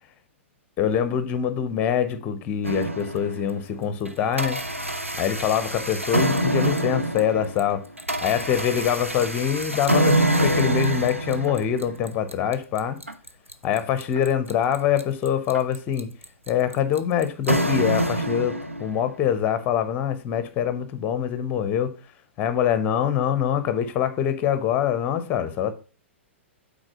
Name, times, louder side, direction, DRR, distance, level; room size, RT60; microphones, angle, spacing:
voice 1, 0.8-4.6 5.2-7.8 8.2-13.0 13.6-16.1 16.5-21.9 22.4-25.7, left 9 dB, 25° left, 0.8 m, -24 dB
sound 1, 2.6-3.6 4.1-19.1, right 1 dB, 90° right, 0.8 m, -26 dB
6.3 x 4.0 x 6.3 m
figure-of-eight pair, 105°, 7 cm